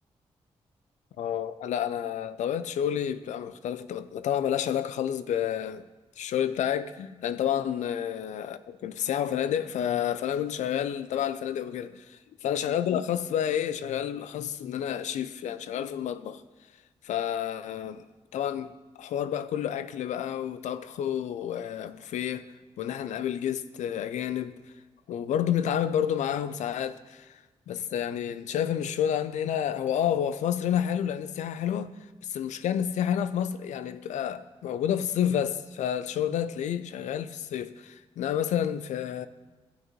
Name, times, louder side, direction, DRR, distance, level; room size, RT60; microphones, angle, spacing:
voice 1, 1.2-5.9 6.2-16.4 17.0-18.1 18.3-22.5 22.8-24.5 25.1-27.3 27.7-31.9 32.3-39.3, left 9 dB, 85° left, 0.4 m, -30 dB
15.0 x 6.2 x 3.0 m
supercardioid pair, 45°, 12 cm